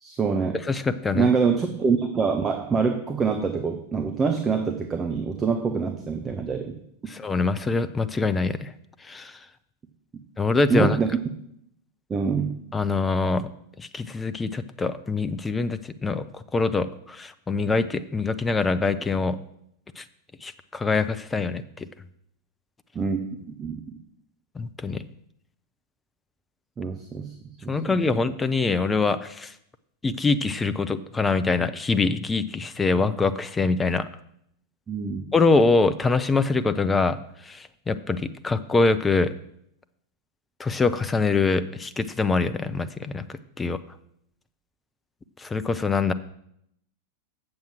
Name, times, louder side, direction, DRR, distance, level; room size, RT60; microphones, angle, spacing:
voice 1, 0.0-0.6 1.1-6.8 10.7-11.1 12.1-12.6 22.9-23.8 26.8-27.3 27.6-28.2 34.9-35.3, right 5 dB, 20° right, 5 dB, 0.8 m, -25 dB
voice 2, 0.7-1.3 7.1-8.7 9.0-9.3 10.4-11.0 12.7-13.5 13.8-19.4 20.0-20.1 20.4-21.6 24.6-25.0 27.7-29.5 30.0-34.0 35.3-37.2 37.5-39.3 40.6-43.3 43.6-43.8 45.4-46.1, left 3 dB, 15° left, 12 dB, 0.5 m, -24 dB
7.6 x 7.2 x 6.0 m, 0.72 s
figure-of-eight pair, 90°, 0 cm